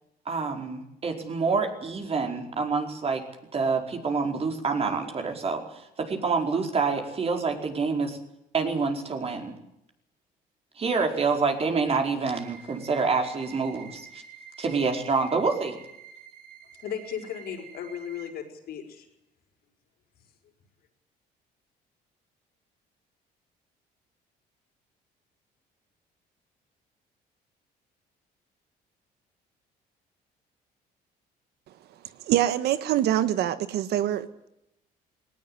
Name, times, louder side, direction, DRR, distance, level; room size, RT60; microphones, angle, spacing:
voice 1, 0.2-3.2 3.5-8.2 8.5-9.5 10.8-14.2 14.6-15.8, right 4 dB, 35° right, 3 dB, 4.9 m, -27 dB
sound 1, 12.3-18.3, right 7 dB, 60° right, 6.5 m, -48 dB
voice 2, 16.8-19.1, left 8 dB, 65° left, 3 dB, 5.7 m, -36 dB
voice 3, 32.3-34.5, right 12 dB, 75° right, 12 dB, 1.5 m, -25 dB
19.5 x 19.0 x 9.8 m, 0.80 s
cardioid pair, 110°, 17 cm